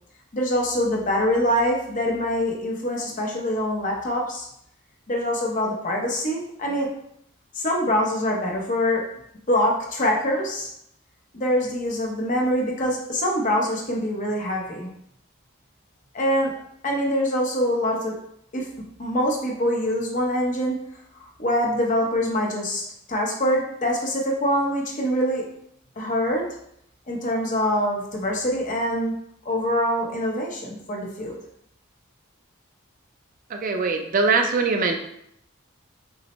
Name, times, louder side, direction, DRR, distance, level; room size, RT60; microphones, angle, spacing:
voice 1, 0.3-4.5 5.1-6.9 7.5-9.0 9.5-10.7 11.3-14.9 16.1-16.5 16.8-18.2 18.5-18.7 19.0-20.7 21.2-25.4 26.0-26.5 27.1-29.2 29.4-31.4, equal, 40° left, 0 dB, 0.7 m, -24 dB
voice 2, 33.5-35.0, right 4 dB, 40° right, 4 dB, 0.4 m, -22 dB
6.0 x 2.1 x 3.0 m, 0.73 s
head